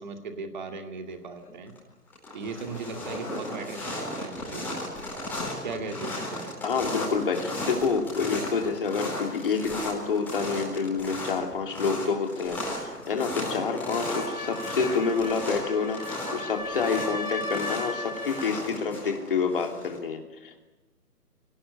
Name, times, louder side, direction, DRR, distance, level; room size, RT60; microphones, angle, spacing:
voice 1, 0.0-1.7 2.3-4.9 5.6-6.6, right 4 dB, 30° right, 6 dB, 2.3 m, -38 dB
sound 1, 1.4-1.8 2.1-20.0, left 1 dB, 5° left, 4.6 m, -35 dB
voice 2, 6.6-20.7, left 5 dB, 35° left, 4 dB, 3.0 m, -28 dB
sound 2, 13.7-18.7, left 2 dB, 65° left, 6.7 m, -37 dB
25.0 x 18.0 x 9.8 m, 1.1 s
figure-of-eight pair, 155°, 46 cm